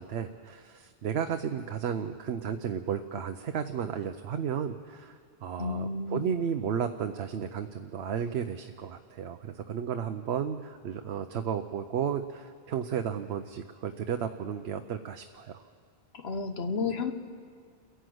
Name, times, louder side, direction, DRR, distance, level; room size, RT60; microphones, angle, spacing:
voice 1, 0.0-15.6, right 8 dB, 75° right, 7 dB, 0.9 m, -33 dB
voice 2, 5.6-6.3 16.1-17.1, left 4 dB, 70° left, 8 dB, 1.3 m, -32 dB
30.0 x 11.0 x 7.8 m, 2.2 s
omnidirectional pair, 1.1 m